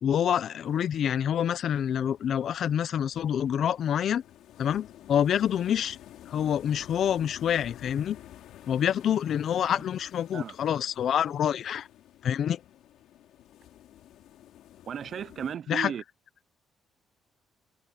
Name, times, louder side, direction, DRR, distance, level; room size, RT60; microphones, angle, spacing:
voice 1, 0.0-4.2 4.6-6.0 6.3-8.2 8.7-11.9 12.2-12.6 15.7-15.9, left 9 dB, 50° left, 0.6 m, -27 dB
sound 1, 0.6-15.6, left 12 dB, 85° left, 3.7 m, -51 dB
voice 2, 14.9-16.0, right 8 dB, 45° right, 0.5 m, -35 dB
open air
cardioid pair, 165°, 0 cm